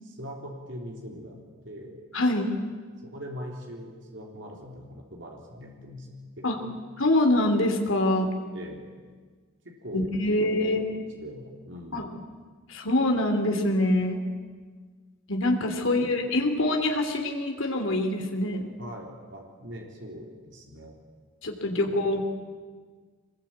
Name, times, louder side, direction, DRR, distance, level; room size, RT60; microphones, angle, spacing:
voice 1, 0.0-2.0 3.0-6.8 8.5-8.9 9.6-12.1 15.8-16.2 18.8-21.0 21.7-22.2, equal, 60° right, 0 dB, 3.6 m, -42 dB
voice 2, 2.1-2.6 6.4-6.6 7.0-8.3 9.9-10.9 11.9-12.1 12.7-14.3 15.3-18.7 21.4-22.2, left 1 dB, 70° left, 4 dB, 3.1 m, -25 dB
23.5 x 21.0 x 8.7 m, 1.5 s
head